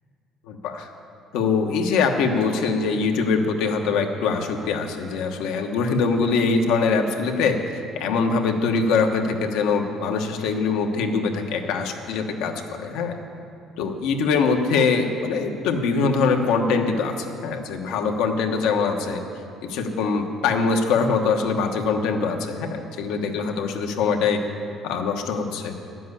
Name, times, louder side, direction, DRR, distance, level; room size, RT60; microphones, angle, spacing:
voice 1, 0.5-0.9 1.3-7.6 7.9-13.2 13.8-19.2 19.7-24.4 24.8-25.7, left 4 dB, 90° left, 4 dB, 1.2 m, -23 dB
11.0 x 7.8 x 9.7 m, 2.6 s
cardioid pair, 120°, 0 cm